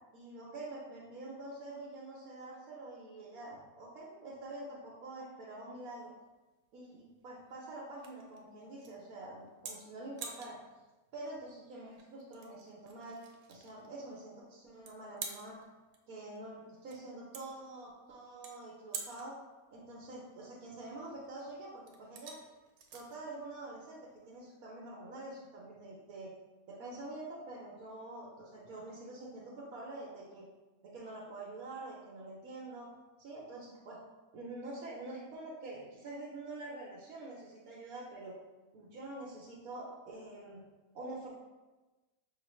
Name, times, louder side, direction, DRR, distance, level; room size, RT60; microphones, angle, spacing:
voice 1, 0.1-6.1 6.7-10.6 11.1-13.2 13.5-15.6 16.1-19.4 19.7-22.4 22.9-26.3 26.7-30.4 30.8-32.9 33.2-34.0 34.3-38.4 38.7-40.6 40.9-41.3, right 2 dB, 65° right, -5 dB, 1.1 m, -46 dB
sound 1, 5.8-24.6, right 5 dB, 85° right, 1.3 m, -51 dB
5.6 x 2.4 x 3.0 m, 1.2 s
omnidirectional pair, 1.9 m